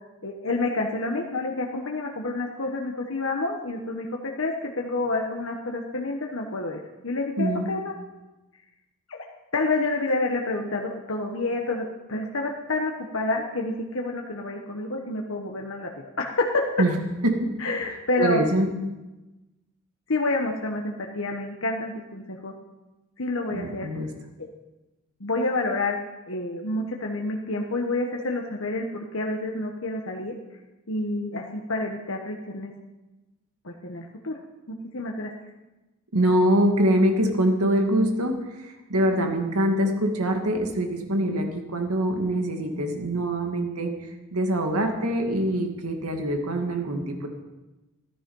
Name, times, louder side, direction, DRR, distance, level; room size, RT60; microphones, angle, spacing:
voice 1, 0.2-7.9 9.1-9.2 9.5-16.7 17.6-18.4 20.1-22.5 23.2-23.9 24.4-24.5 25.2-26.0 26.3-30.3 30.9-32.7 33.6-34.4 34.7-35.3, left 2 dB, 65° left, 1 dB, 1.3 m, -28 dB
voice 2, 7.4-7.7 16.8-17.0 18.2-18.7 23.5-24.1 36.1-47.3, right 1 dB, 90° right, 3 dB, 2.3 m, -24 dB
14.5 x 13.5 x 5.5 m, 1.1 s
head